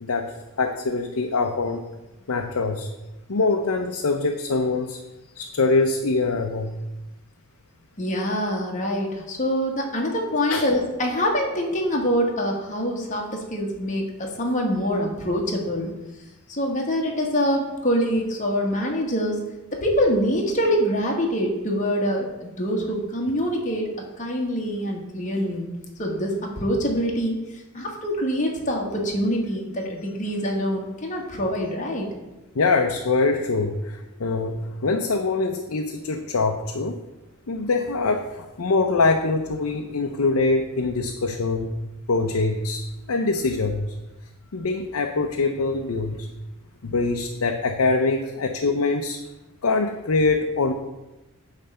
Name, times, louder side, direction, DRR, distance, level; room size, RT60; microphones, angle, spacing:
voice 1, 0.0-1.8 2.3-2.9 3.3-5.0 5.3-6.7 10.5-10.6 32.5-37.0 37.5-41.7 42.1-43.9 44.5-46.3 46.8-49.2 49.6-50.7, left 3 dB, 70° left, 3 dB, 0.6 m, -24 dB
voice 2, 8.0-15.9 16.5-19.4 19.7-23.9 24.2-25.7 26.0-32.1 48.7-48.8, equal, 35° left, 0 dB, 1.4 m, -25 dB
9.0 x 3.3 x 6.7 m, 1.0 s
head